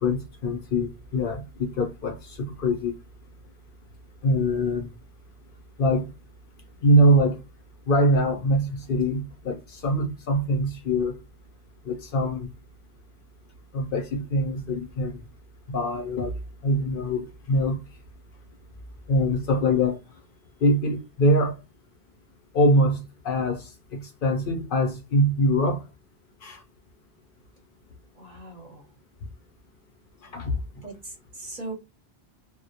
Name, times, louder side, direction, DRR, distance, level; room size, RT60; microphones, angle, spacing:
voice 1, 0.0-3.0 4.2-4.9 5.8-6.1 6.8-7.4 7.9-11.2 11.9-12.5 13.7-15.2 15.7-16.3 16.6-17.8 19.1-20.0 20.6-21.6 22.5-25.8 26.4-26.6 30.3-30.6, equal, 60° left, 0.7 m, -23 dB
voice 2, 28.2-28.8 30.8-31.7, right 2 dB, 45° right, 0.8 m, -39 dB
2.2 x 2.1 x 2.7 m
omnidirectional pair, 1.1 m